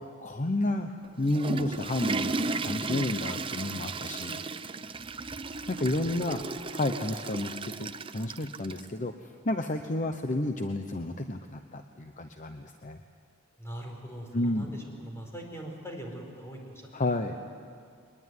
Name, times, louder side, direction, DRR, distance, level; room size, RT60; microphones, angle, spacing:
voice 1, 0.0-4.4 5.7-6.4 6.7-13.0 14.3-14.7 16.9-17.4, left 2 dB, 40° left, 6 dB, 0.9 m, -31 dB
Water / Toilet flush, 1.0-8.9, right 3 dB, 25° right, 0.6 m, -34 dB
voice 2, 6.0-6.6 13.6-17.4, right 1 dB, 15° left, 0 dB, 4.8 m, -42 dB
22.5 x 21.0 x 9.5 m, 2.3 s
head